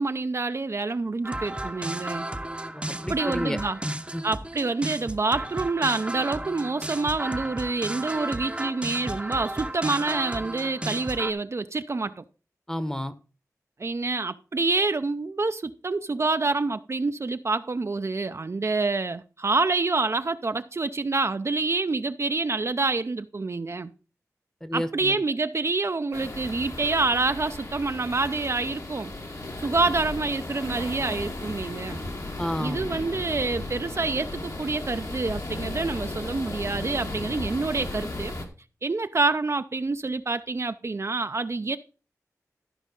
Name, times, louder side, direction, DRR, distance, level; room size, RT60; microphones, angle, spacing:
voice 1, 0.0-2.3 3.1-3.8 4.2-12.2 13.8-23.9 24.7-29.1 29.6-32.0 32.6-38.3 38.8-41.8, right 3 dB, 50° right, 0.5 m, -27 dB
sound 1, 1.2-11.3, right 1 dB, 20° right, 0.8 m, -34 dB
voice 2, 2.7-4.2 12.7-13.1 24.6-25.2 32.4-32.8, equal, 10° left, 1.0 m, -31 dB
sound 2, 26.1-38.5, left 2 dB, 60° left, 2.0 m, -35 dB
13.0 x 5.1 x 5.2 m
wide cardioid pair, 70°, 6 cm